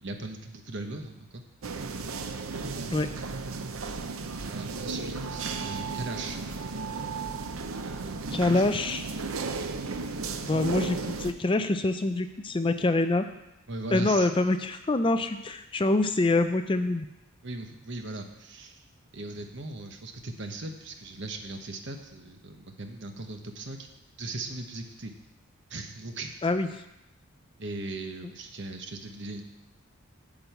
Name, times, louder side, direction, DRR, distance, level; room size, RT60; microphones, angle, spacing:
voice 1, 0.0-1.4 4.5-6.4 7.8-8.7 13.7-14.3 17.4-18.8 19.1-23.9 24.2-25.1 25.7-26.3 27.6-29.4, right 2 dB, 55° right, 5 dB, 1.1 m, -38 dB
sound 1, 1.6-11.3, right 4 dB, 80° right, 0.7 m, -34 dB
voice 2, 8.3-9.0 10.4-13.3 13.9-17.1 26.4-26.7, left 2 dB, 25° left, 9 dB, 0.4 m, -25 dB
8.9 x 5.4 x 8.0 m, 0.89 s
head